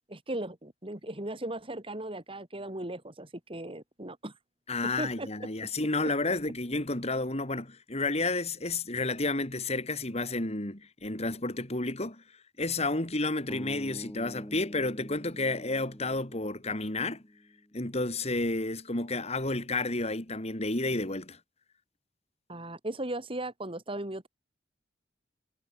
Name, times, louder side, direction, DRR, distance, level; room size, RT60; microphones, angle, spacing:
voice 1, 0.1-4.3 4.8-5.5 22.5-24.3, right 1 dB, 30° right, 4.2 m, -37 dB
voice 2, 4.7-12.2 12.6-17.2 17.7-21.4, left 2 dB, 35° left, 3.2 m, -31 dB
sound 1, 13.5-17.6, equal, 15° left, 4.8 m, -46 dB
head